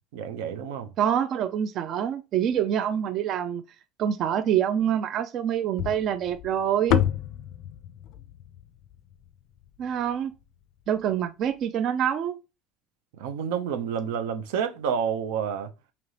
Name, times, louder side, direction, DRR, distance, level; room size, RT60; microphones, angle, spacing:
voice 1, 0.1-0.9 13.1-15.7, right 7 dB, 85° right, 0.6 m, -29 dB
voice 2, 1.0-3.6 4.0-7.0 9.8-10.3 10.9-12.4, right 9 dB, 45° right, 0.3 m, -26 dB
sound 1, 5.8-10.1, left 10 dB, 60° left, 0.3 m, -30 dB
5.1 x 2.9 x 3.2 m
cardioid pair, 135°, 0 cm